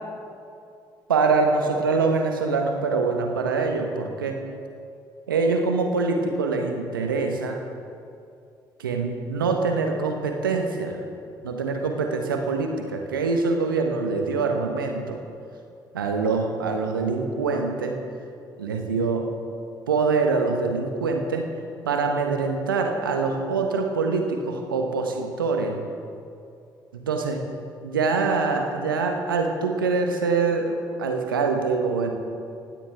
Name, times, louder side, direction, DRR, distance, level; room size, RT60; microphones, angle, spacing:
voice 1, 1.1-4.4 5.3-7.6 8.8-11.0 11.4-15.2 15.9-18.0 18.6-19.3 19.9-21.4 21.8-25.8 26.9-27.4 27.8-32.1, right 4 dB, 85° right, 4 dB, 1.3 m, -24 dB
24.0 x 16.5 x 3.6 m, 2.5 s
figure-of-eight pair, 45°, 11 cm